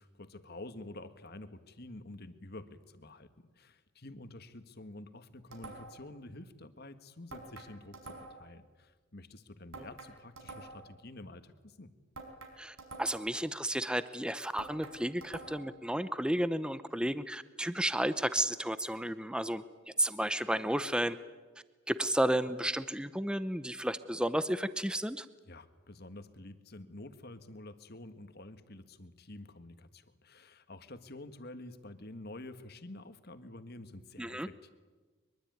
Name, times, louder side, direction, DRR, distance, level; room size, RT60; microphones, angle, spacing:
voice 1, 0.0-11.9 25.5-34.7, left 2 dB, 45° left, 10 dB, 1.6 m, -49 dB
sound 1, 5.5-6.1 7.3-8.5 9.7-10.9 12.1-13.4 14.6-15.8, right 3 dB, 75° right, 5.1 m, -48 dB
voice 2, 12.6-19.6 20.0-21.2 21.9-25.3 34.2-34.5, right 1 dB, 5° right, 13 dB, 0.7 m, -32 dB
23.5 x 23.0 x 9.4 m, 1.3 s
head